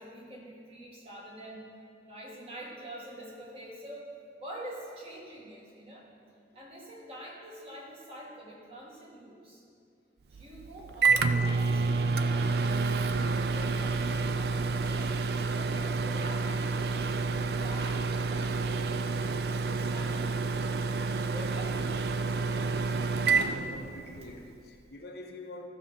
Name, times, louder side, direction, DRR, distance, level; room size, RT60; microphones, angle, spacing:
voice 1, 0.0-1.7 2.0-6.1 6.5-9.6 10.3-12.7 13.0-16.9 17.3-20.6 21.3-22.0, equal, 30° right, 1.8 m, -46 dB
Microwave oven, 10.3-24.4, right 4 dB, 55° right, 0.4 m, -29 dB
voice 2, 23.3-25.7, left 2 dB, 55° left, 0.8 m, -45 dB
14.5 x 6.0 x 5.6 m
head